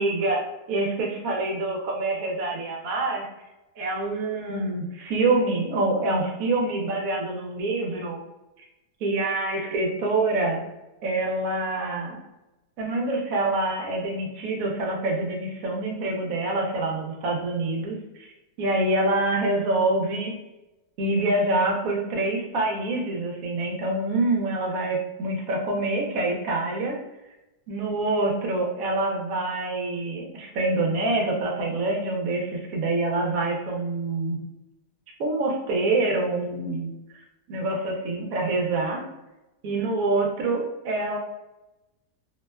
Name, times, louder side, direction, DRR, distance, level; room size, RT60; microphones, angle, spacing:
voice 1, 0.0-3.2 3.8-8.2 9.0-10.6 11.0-12.2 12.8-18.3 18.6-20.3 21.0-27.0 27.7-34.4 35.2-36.9 37.5-39.0 39.6-41.2, right 2 dB, 70° right, 0 dB, 0.9 m, -26 dB
2.8 x 2.1 x 2.2 m, 0.98 s
omnidirectional pair, 1.8 m